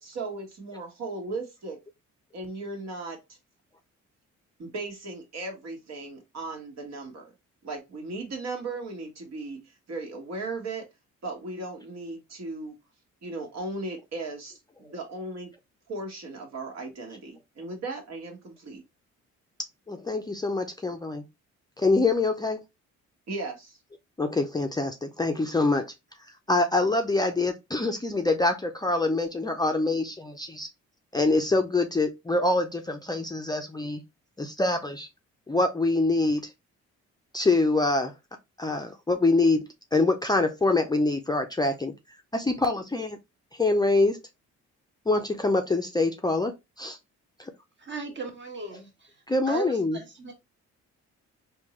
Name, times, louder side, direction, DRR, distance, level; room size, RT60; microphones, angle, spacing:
voice 1, 0.0-1.8 2.3-3.2 4.6-7.3 7.6-9.6 9.9-10.8 11.2-12.7 13.2-14.5 14.8-15.5 15.9-18.8 23.3-23.8, right 3 dB, 60° right, 1.5 m, -36 dB
voice 2, 19.9-21.2 21.8-22.6 24.2-25.9 26.5-30.7 31.1-34.0 34.4-35.1 35.5-36.5 37.3-38.1 38.6-41.9 42.3-43.2 43.6-44.2 45.1-47.0 47.4-47.5 49.3-50.0, left 2 dB, 15° left, 0.5 m, -25 dB
voice 3, 47.8-48.9 49.5-50.3, right 3 dB, 40° right, 1.3 m, -36 dB
3.6 x 2.7 x 3.1 m
cardioid pair, 90°, 30 cm